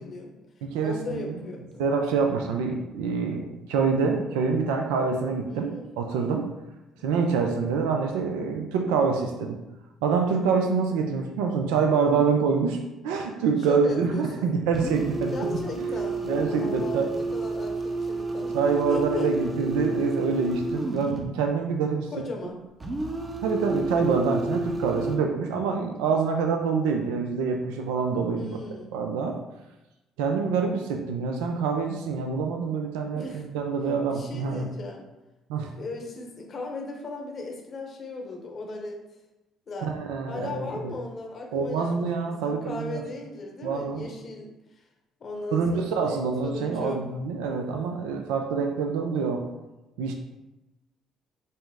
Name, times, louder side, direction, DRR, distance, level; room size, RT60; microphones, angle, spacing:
voice 1, 0.0-1.9 5.5-5.9 7.0-7.1 7.4-7.7 13.6-14.5 15.3-19.3 22.1-22.7 28.4-29.0 33.1-33.5 34.1-35.1 35.8-39.0 39.7-40.0 40.3-44.8 45.2-47.0, left 2 dB, 50° left, 2 dB, 0.8 m, -37 dB
voice 2, 0.6-1.4 1.8-6.5 7.0-9.6 10.0-12.8 13.0-15.3 15.8-15.9 16.3-17.1 18.5-22.1 23.4-28.6 28.9-29.4 30.2-34.7 35.5-35.7 39.9-40.9 41.5-43.0 43.6-44.0 45.5-49.4 50.0-50.1, right 5 dB, 85° right, 3 dB, 0.4 m, -26 dB
sound 1, 14.7-21.3 22.8-25.2, right 2 dB, 30° right, 0.7 m, -31 dB
5.2 x 2.0 x 3.5 m, 1.0 s
hypercardioid pair, 60°, 0 cm